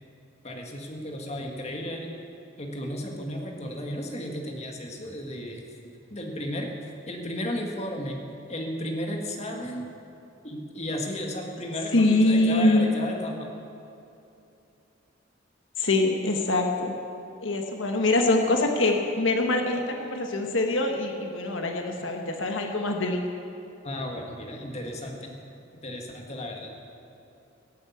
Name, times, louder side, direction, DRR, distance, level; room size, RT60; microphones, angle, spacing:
voice 1, 0.4-2.1 2.6-5.6 6.1-6.7 7.1-8.2 8.5-9.9 10.4-13.5 23.8-25.4 25.8-26.7, left 1 dB, 35° left, 1 dB, 1.7 m, -34 dB
voice 2, 11.9-12.9 15.8-16.9 17.4-23.2, left 2 dB, 75° left, 3 dB, 1.3 m, -24 dB
18.0 x 8.5 x 8.5 m, 2.7 s
head